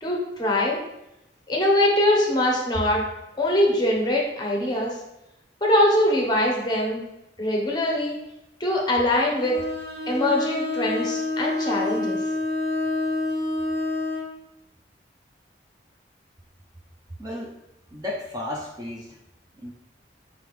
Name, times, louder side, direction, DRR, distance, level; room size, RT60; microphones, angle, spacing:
voice 1, 0.0-0.8 1.5-3.0 3.4-5.0 5.6-7.0 7.4-8.2 8.6-9.6 10.1-12.2, left 1 dB, 20° left, -1 dB, 0.8 m, -22 dB
Bowed string instrument, 9.4-14.3, left 2 dB, 55° right, 0.8 m, -27 dB
voice 2, 17.2-17.6 17.9-19.2 19.6-19.7, left 1 dB, 20° right, -2 dB, 0.5 m, -33 dB
4.7 x 3.5 x 3.2 m, 0.87 s
head